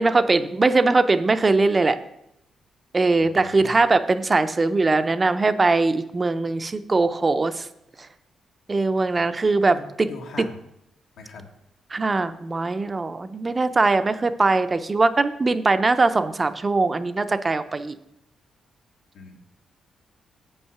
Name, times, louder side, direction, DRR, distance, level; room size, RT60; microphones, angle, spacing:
voice 1, 0.0-2.0 2.9-7.7 8.7-9.8 11.9-17.9, right 3 dB, 25° right, 11 dB, 0.4 m, -21 dB
voice 2, 3.2-3.8 9.1-9.2 9.7-10.6 11.2-11.5 19.1-19.6, left 3 dB, 80° left, 3 dB, 1.3 m, -41 dB
7.3 x 5.5 x 5.7 m, 0.80 s
cardioid pair, 125°, 0 cm